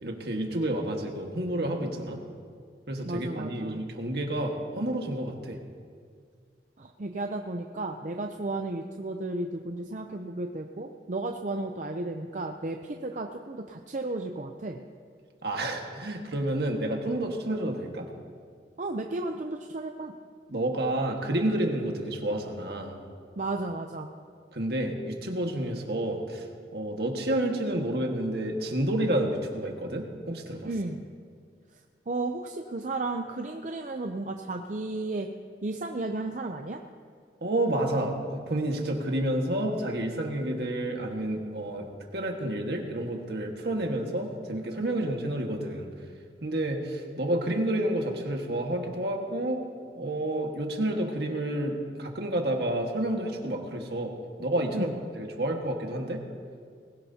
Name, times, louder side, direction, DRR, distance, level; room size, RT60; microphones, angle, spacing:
voice 1, 0.0-2.2 2.9-5.6 15.4-18.1 20.5-23.0 24.5-26.4 26.7-30.7 37.4-41.9 42.1-45.9 46.4-49.6 49.9-54.1 54.4-56.2, right 1 dB, 65° right, 2 dB, 1.6 m, -30 dB
voice 2, 3.1-3.8 6.8-14.8 18.8-20.1 23.4-24.1 30.6-31.0 32.1-35.3 35.6-36.8 54.7-54.9, right 2 dB, 45° right, 4 dB, 0.6 m, -33 dB
20.5 x 17.0 x 2.8 m, 2.1 s
head